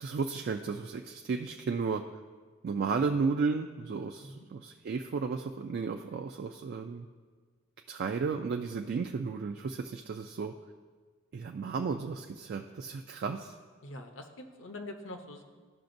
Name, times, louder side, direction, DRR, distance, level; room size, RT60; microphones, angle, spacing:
voice 1, 0.0-2.2 2.6-7.1 7.9-10.5 11.3-13.5, right 5 dB, 55° right, 4 dB, 0.3 m, -33 dB
voice 2, 13.8-15.4, left 1 dB, 70° left, 5 dB, 0.8 m, -44 dB
13.5 x 5.8 x 2.6 m, 1.5 s
head